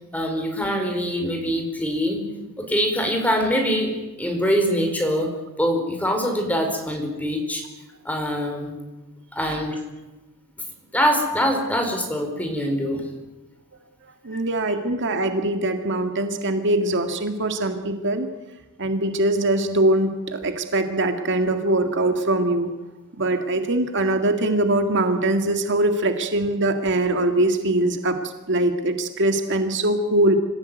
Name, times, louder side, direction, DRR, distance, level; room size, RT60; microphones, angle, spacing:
voice 1, 0.1-2.2 2.6-3.9 4.2-5.3 5.6-7.6 8.0-8.7 9.3-9.8 10.9-13.0, equal, 5° left, 3 dB, 4.9 m, -23 dB
voice 2, 14.2-18.3 18.8-22.7 23.2-30.3, right 1 dB, 55° right, 6 dB, 1.9 m, -22 dB
26.0 x 16.0 x 9.2 m, 1.1 s
head